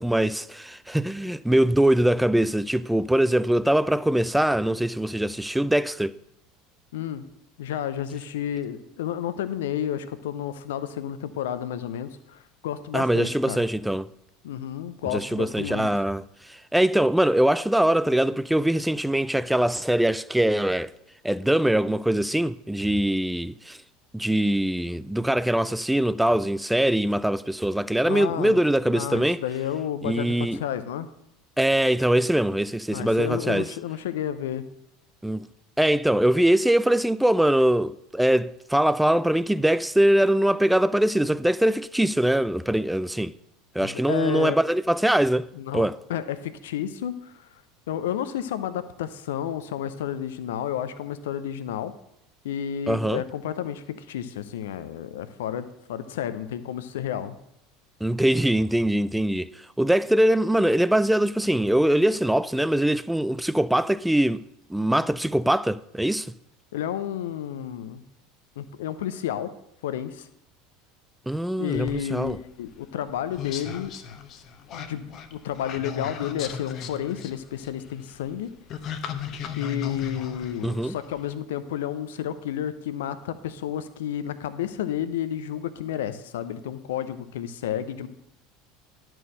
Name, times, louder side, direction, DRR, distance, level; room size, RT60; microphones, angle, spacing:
voice 1, 0.0-6.1 12.9-14.1 15.1-16.2 16.7-20.9 21.2-23.8 24.1-29.4 30.0-30.6 31.6-33.7 35.2-35.5 35.8-43.3 43.7-45.5 45.7-46.0 52.9-53.2 58.0-59.5 59.8-64.4 64.7-66.3 71.3-72.4 80.6-81.0, right 1 dB, 5° right, 0.3 m, -22 dB
voice 2, 6.9-7.2 7.6-13.6 14.4-16.1 28.1-28.6 28.9-31.1 32.9-34.6 43.8-44.6 45.5-47.5 47.9-51.9 52.4-57.3 66.7-68.0 68.6-69.5 69.8-70.3 71.6-73.9 74.7-78.5 79.6-88.1, left 10 dB, 75° left, 0.6 m, -31 dB
sound 1, 71.7-81.4, left 7 dB, 50° left, 0.8 m, -37 dB
11.0 x 4.6 x 6.4 m
hypercardioid pair, 75°, 0 cm